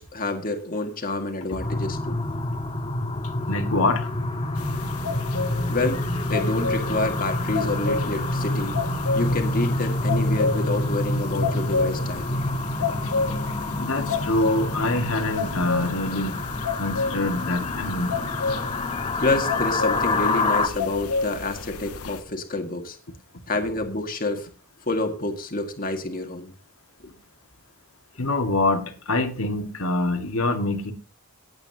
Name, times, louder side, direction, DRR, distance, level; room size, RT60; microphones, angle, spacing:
voice 1, 0.0-2.2 5.7-8.8 9.1-12.3 19.2-23.0 23.5-24.5 24.9-26.5, left 2 dB, 40° left, 2.0 m, -28 dB
sound 1, 1.6-20.7, left 2 dB, 25° left, 1.5 m, -27 dB
voice 2, 3.5-4.1 13.8-16.4 16.8-18.2 27.0-27.1 28.2-30.9, left 2 dB, 70° left, 2.0 m, -25 dB
sound 2, 4.6-22.2, left 4 dB, 85° left, 0.9 m, -31 dB
18.5 x 8.7 x 2.9 m
head